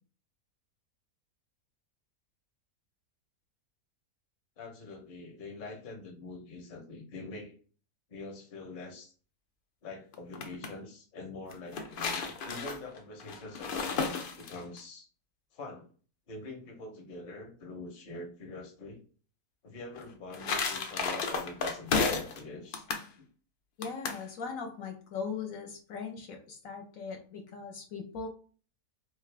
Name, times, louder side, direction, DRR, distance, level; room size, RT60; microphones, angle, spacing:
voice 1, 4.6-7.5 8.1-9.1 9.8-15.1 15.5-15.9 16.3-19.0 19.6-22.8, left 2 dB, 45° left, 2 dB, 0.8 m, -44 dB
sound 1, 10.1-10.7 11.5-14.8 19.9-22.4 22.7-23.1 23.8-24.2, left 5 dB, 90° left, 0.4 m, -33 dB
voice 2, 23.8-28.3, left 5 dB, 70° left, 3 dB, 0.9 m, -39 dB
3.0 x 2.4 x 3.2 m, 0.40 s
omnidirectional pair, 1.6 m